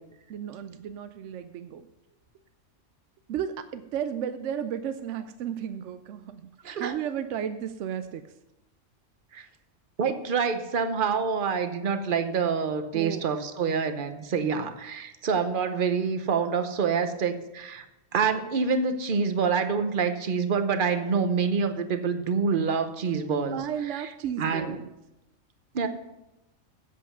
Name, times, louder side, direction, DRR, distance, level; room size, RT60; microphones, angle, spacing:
voice 1, 0.3-1.9 3.3-6.4 6.8-8.2 12.9-13.3 15.4-15.6 23.5-24.9, right 9 dB, 75° right, 11 dB, 0.9 m, -33 dB
voice 2, 10.0-17.8 18.1-24.1 24.4-24.8 25.7-25.9, right 5 dB, 45° right, 9 dB, 0.9 m, -27 dB
8.4 x 7.8 x 6.8 m, 0.92 s
omnidirectional pair, 1.3 m